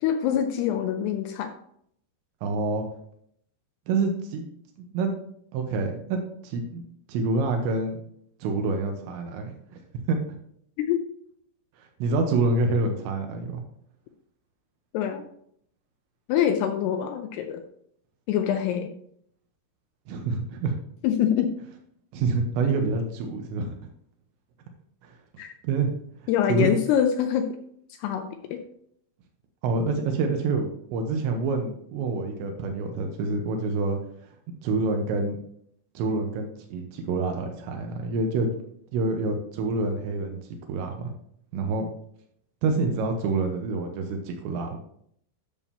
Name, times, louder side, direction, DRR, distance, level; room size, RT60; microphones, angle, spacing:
voice 1, 0.0-1.5 10.8-11.0 14.9-15.2 16.3-17.6 18.3-18.9 21.0-21.5 25.4-25.5 26.3-27.5 28.0-28.6, left 9 dB, 80° left, 6 dB, 2.5 m, -25 dB
voice 2, 2.4-2.8 3.9-4.5 4.8-5.1 5.5-6.8 7.1-8.0 8.4-9.5 10.1-10.2 11.8-13.6 20.1-20.7 22.1-23.7 25.0-25.2 25.6-25.9 26.5-26.7 29.6-34.0 34.6-35.4 35.9-38.5 38.9-41.1 41.5-41.9 42.6-44.8, right 3 dB, 90° right, 3 dB, 3.2 m, -27 dB
10.0 x 7.2 x 2.8 m, 0.67 s
omnidirectional pair, 5.1 m